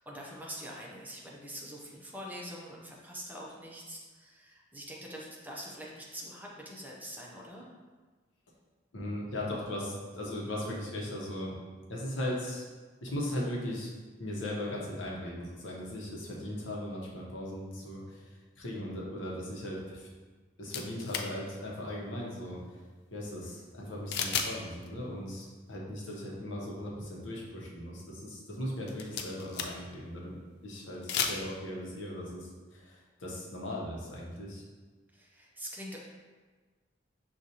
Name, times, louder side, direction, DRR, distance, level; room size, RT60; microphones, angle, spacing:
voice 1, 0.0-7.7 35.1-36.0, equal, 10° right, -3 dB, 0.6 m, -44 dB
voice 2, 8.9-11.6 11.9-12.6 13.0-13.9 14.2-20.1 20.6-22.6 23.1-34.6, left 1 dB, 85° left, -3 dB, 0.9 m, -38 dB
sound 1, 20.7-21.3 24.1-24.5 24.8-24.9 28.8-29.9 30.9-31.4, left 6 dB, 60° left, 0.4 m, -33 dB
6.2 x 2.5 x 2.7 m, 1.4 s
head